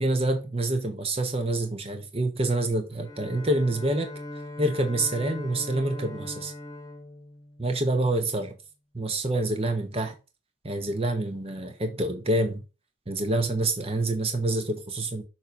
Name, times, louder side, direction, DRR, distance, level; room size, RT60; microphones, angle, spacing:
voice 1, 0.0-4.1 4.6-6.5 7.6-8.5 8.9-10.1 10.6-12.6 13.1-15.2, right 2 dB, 30° right, 0.9 m, -27 dB
Bowed string instrument, 2.9-8.1, left 2 dB, 15° left, 1.0 m, -40 dB
6.9 x 3.0 x 5.2 m
head